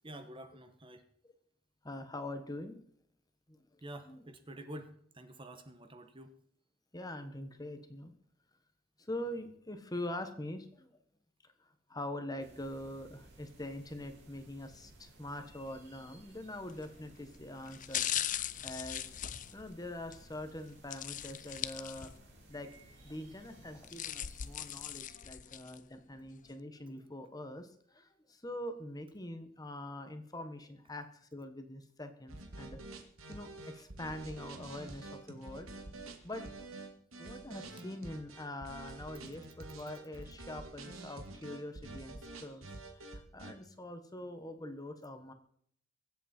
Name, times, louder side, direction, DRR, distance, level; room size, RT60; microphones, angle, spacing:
voice 1, 0.0-1.0 3.8-6.4, right 1 dB, 25° right, 8 dB, 1.2 m, -48 dB
voice 2, 1.8-2.8 3.5-3.6 4.1-4.2 6.9-8.1 9.0-10.9 11.4-11.5 11.9-18.1 18.6-19.0 19.5-22.1 22.5-22.7 23.0-32.8 33.3-35.7 36.2-36.5 37.2-45.3, left 1 dB, 20° left, 8 dB, 1.2 m, -44 dB
sound 1, 12.4-25.1, right 1 dB, 55° right, 5.2 m, -59 dB
sound 2, 16.7-17.0 17.7-20.2 20.9-22.4 22.7-22.8 23.6-25.8 26.3-26.4, left 11 dB, 35° left, 0.5 m, -39 dB
sound 3, 32.3-43.5, right 2 dB, 75° right, 2.2 m, -48 dB
22.5 x 8.3 x 4.4 m, 0.63 s
head